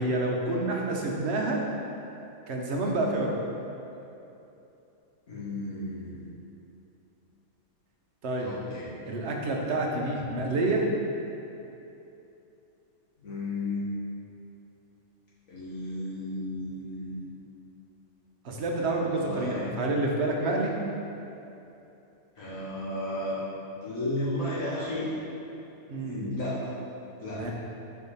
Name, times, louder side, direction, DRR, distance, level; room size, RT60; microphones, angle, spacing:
voice 1, 0.0-1.6 2.5-3.4 8.2-8.5 9.1-10.8 18.4-20.7 25.9-26.3 27.3-27.5, right 2 dB, 55° right, -1 dB, 1.0 m, -28 dB
voice 2, 5.3-6.2 8.4-8.8 13.2-13.9 15.5-17.2 19.0-19.7 22.4-23.4 23.8-25.1 26.0-26.5 27.2-27.5, left 1 dB, 65° left, -9 dB, 1.5 m, -33 dB
4.7 x 4.5 x 5.5 m, 2.9 s
omnidirectional pair, 1.5 m